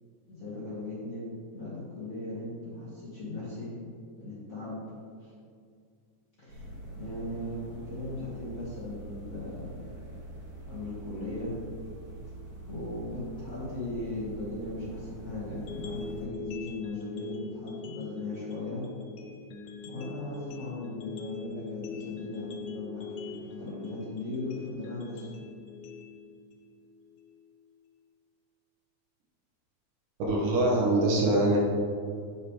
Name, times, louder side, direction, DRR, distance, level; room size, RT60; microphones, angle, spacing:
voice 1, 0.3-1.3 1.5-3.8 4.2-4.8 5.2-5.3 6.4-6.6 6.9-9.8 10.6-11.6 12.7-18.9 19.8-25.3, left 2 dB, 35° left, -9 dB, 1.4 m, -38 dB
sound 1, 6.5-16.3, right 1 dB, 65° right, 3.0 m, -44 dB
sound 2, 15.5-27.5, left 6 dB, 80° left, 1.4 m, -43 dB
voice 2, 30.3-31.6, right 2 dB, 85° right, -2 dB, 2.8 m, -23 dB
8.0 x 6.9 x 3.2 m, 2.2 s
omnidirectional pair, 3.5 m